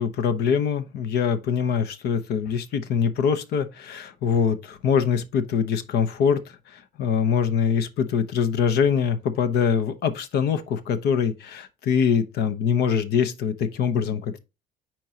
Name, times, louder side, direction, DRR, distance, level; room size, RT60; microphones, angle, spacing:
voice 1, 0.0-6.4 7.0-14.4, left 7 dB, 75° left, 0.9 m, -23 dB
8.6 x 4.6 x 2.8 m
cardioid pair, 110°, 17 cm